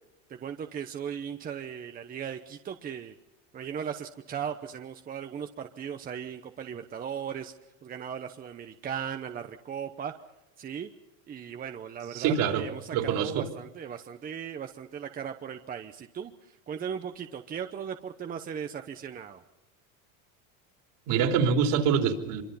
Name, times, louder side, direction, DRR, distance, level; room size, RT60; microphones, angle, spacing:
voice 1, 0.3-3.2 3.5-7.5 7.8-10.1 10.6-10.9 11.3-19.4, right 8 dB, 20° right, 6 dB, 0.9 m, -37 dB
voice 2, 12.1-12.6 12.9-13.5 21.1-22.4, right 7 dB, 60° right, 3 dB, 3.5 m, -25 dB
25.5 x 24.0 x 5.6 m, 0.94 s
supercardioid pair, 145°, 39 cm